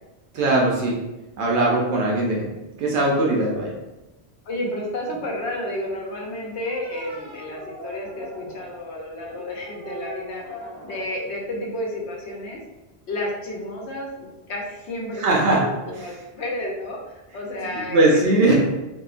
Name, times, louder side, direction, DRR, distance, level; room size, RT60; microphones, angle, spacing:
voice 1, 0.3-0.9 1.4-2.4 2.8-3.7 15.1-15.6 16.0-16.1 17.7-18.5, right 2 dB, 80° right, -3 dB, 0.9 m, -20 dB
voice 2, 4.4-10.4 10.8-12.6 13.1-14.1 14.5-18.3, left 1 dB, 80° left, -1 dB, 0.9 m, -31 dB
sound 1, 5.1-5.4 6.4-8.9 9.3-11.1, equal, 40° right, 0.3 m, -40 dB
2.8 x 2.1 x 2.4 m, 1.1 s
omnidirectional pair, 1.1 m